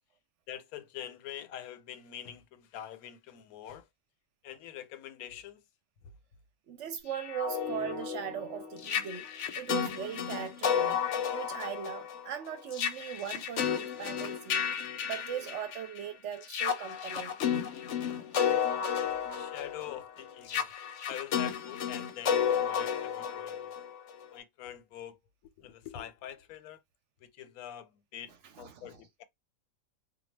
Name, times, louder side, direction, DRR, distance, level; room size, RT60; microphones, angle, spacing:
voice 1, 0.5-3.9 4.4-5.6 19.3-20.7 21.1-23.8 24.3-26.8 27.2-29.2, left 11 dB, 90° left, 1.0 m, -45 dB
voice 2, 6.7-9.3 9.6-11.0 11.3-14.7 15.0-17.4 18.4-18.5 28.4-29.0, right 9 dB, 65° right, 0.8 m, -39 dB
sound 1, 7.1-16.0 16.4-24.2, left 8 dB, 70° left, 0.8 m, -32 dB
2.3 x 2.2 x 3.1 m
omnidirectional pair, 1.5 m